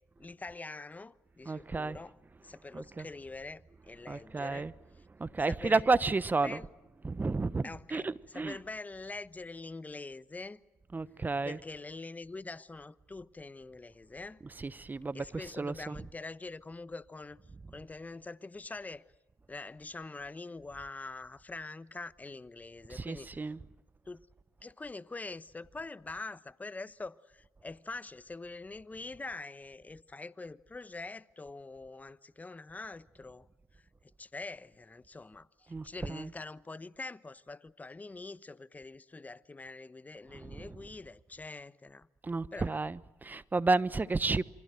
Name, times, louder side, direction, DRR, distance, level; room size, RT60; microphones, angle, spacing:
voice 1, 0.2-4.7 5.4-5.8 6.4-6.7 7.6-10.6 11.4-14.4 15.1-17.4 17.7-19.0 19.5-23.3 24.1-24.3 24.6-33.4 33.7-42.1 42.5-42.7, left 3 dB, 20° left, 1.0 m, -44 dB
voice 2, 1.4-2.0 2.7-3.1 4.1-4.7 5.2-6.6 7.0-8.6 10.9-11.6 14.4-16.0 17.6-17.7 22.9-23.6 35.7-36.3 40.3-40.8 42.2-44.4, right 3 dB, 25° right, 1.0 m, -32 dB
28.0 x 24.5 x 7.8 m
hypercardioid pair, 55°, 7 cm